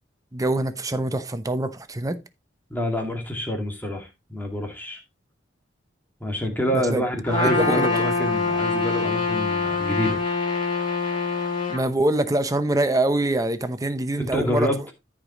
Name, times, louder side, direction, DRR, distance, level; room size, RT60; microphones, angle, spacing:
voice 1, 0.3-2.2 6.7-7.0 7.4-7.9 11.7-14.7, right 1 dB, 20° right, 0.8 m, -24 dB
voice 2, 2.7-5.0 6.2-10.2 14.2-14.9, left 1 dB, 10° left, 2.2 m, -27 dB
Trumpet, 7.3-11.8, left 3 dB, 25° left, 3.1 m, -24 dB
13.5 x 5.1 x 3.1 m
head